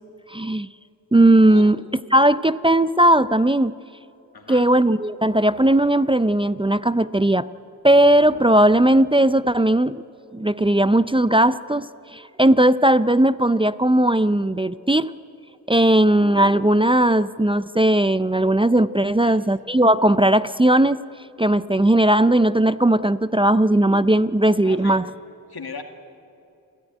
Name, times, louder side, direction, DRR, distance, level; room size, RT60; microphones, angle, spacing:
voice 1, 0.3-0.7 1.1-1.8 2.1-3.7 4.5-7.5 7.8-10.0 10.3-11.9 12.1-15.1 15.7-21.0 21.4-25.1, right 1 dB, 15° right, 14 dB, 0.4 m, -17 dB
voice 2, 4.3-4.7 19.0-19.4 24.6-25.0 25.5-25.8, left 5 dB, 90° left, 4 dB, 2.0 m, -37 dB
29.0 x 13.5 x 9.2 m, 2.7 s
wide cardioid pair, 70°, 37 cm